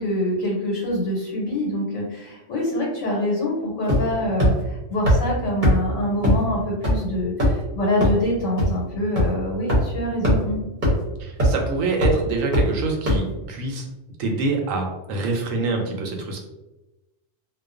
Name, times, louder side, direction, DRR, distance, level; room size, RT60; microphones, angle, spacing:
voice 1, 0.0-10.6, left 1 dB, 80° left, -4 dB, 1.1 m, -25 dB
sound 1, 3.9-4.1 4.4-4.5 5.1-5.2 5.6-5.7 6.2-6.3 6.8-6.9 7.4-7.6 8.0-8.1 8.6-8.7 9.2-9.3 9.7-9.8 10.2-10.3 10.8-10.9 11.4-11.6 12.0-12.1 12.5-12.6 13.1-13.2, equal, 45° right, 0.8 m, -17 dB
voice 2, 11.2-13.9 14.2-16.4, right 3 dB, 85° right, 2 dB, 1.0 m, -25 dB
2.3 x 2.2 x 2.4 m, 1.0 s
omnidirectional pair, 1.3 m